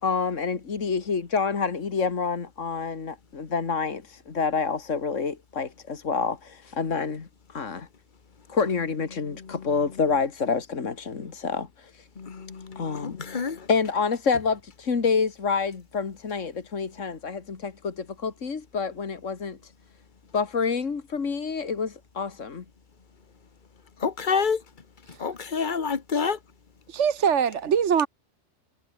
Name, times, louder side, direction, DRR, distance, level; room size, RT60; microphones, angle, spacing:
voice 1, 0.0-7.9 8.5-11.9 12.8-13.2 13.7-19.6 20.3-22.6, left 5 dB, 80° left, 2.2 m, -28 dB
voice 2, 12.2-13.6 24.0-24.6 25.2-26.4, left 5 dB, 40° left, 1.4 m, -27 dB
voice 3, 26.9-28.1, right 7 dB, 70° right, 1.4 m, -22 dB
omnidirectional pair, 1.3 m